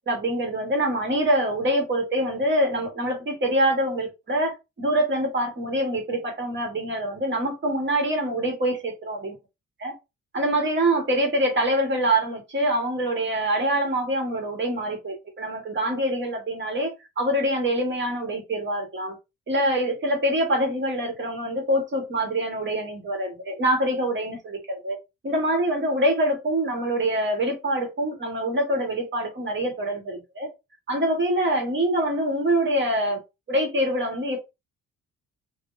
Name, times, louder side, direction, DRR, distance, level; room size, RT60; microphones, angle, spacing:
voice 1, 0.1-4.5 4.8-9.3 9.8-10.0 10.3-19.2 19.5-25.0 25.2-30.5 30.9-33.2 33.5-34.4, right 1 dB, 40° right, 1.6 m, -25 dB
3.6 x 2.7 x 2.6 m
cardioid pair, 90°, 30 cm